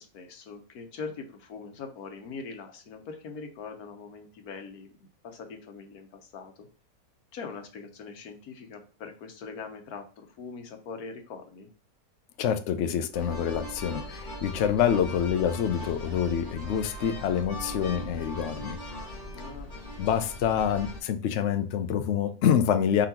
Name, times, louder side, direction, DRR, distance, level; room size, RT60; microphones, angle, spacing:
voice 1, 0.0-4.9 5.2-6.7 7.3-11.7 19.3-20.0, left 5 dB, 90° left, 1.4 m, -42 dB
voice 2, 12.4-18.8 20.0-23.1, left 8 dB, 65° left, 0.7 m, -26 dB
sound 1, 13.1-21.0, equal, 35° left, 1.3 m, -39 dB
4.7 x 3.9 x 2.9 m
omnidirectional pair, 1.5 m